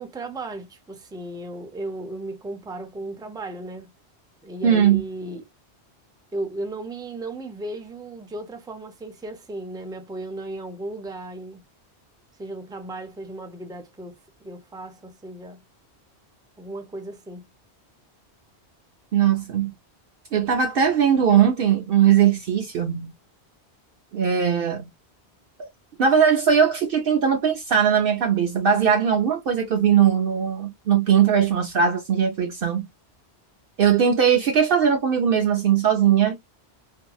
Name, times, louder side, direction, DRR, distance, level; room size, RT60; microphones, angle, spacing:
voice 1, 0.0-3.9 4.4-5.4 6.3-11.6 12.4-15.6 16.6-17.5, right 2 dB, 5° right, 0.3 m, -35 dB
voice 2, 4.6-5.0 19.1-19.7 20.3-23.1 24.1-24.9 26.0-32.9 33.8-36.4, right 8 dB, 65° right, 0.7 m, -19 dB
2.8 x 2.7 x 2.2 m
omnidirectional pair, 1.1 m